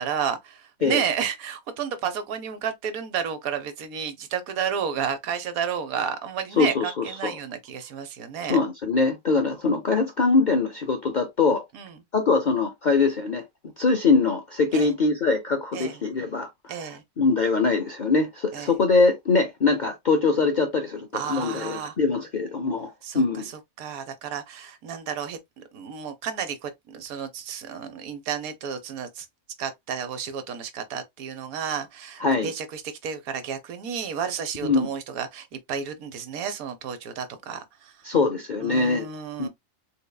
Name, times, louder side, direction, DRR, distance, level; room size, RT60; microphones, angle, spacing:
voice 1, 0.0-8.6 11.7-12.0 14.7-14.9 15.7-15.9 16.7-17.0 18.5-18.7 21.1-22.0 23.0-29.3 29.6-37.9 38.6-39.5, right 7 dB, 80° right, 1.2 m, -32 dB
voice 2, 6.6-7.3 8.5-11.6 12.1-13.4 13.8-16.9 17.2-23.5 32.2-32.5 34.6-34.9 38.0-39.1 39.4-39.5, left 4 dB, 60° left, 0.5 m, -23 dB
3.9 x 3.4 x 2.2 m
omnidirectional pair, 1.5 m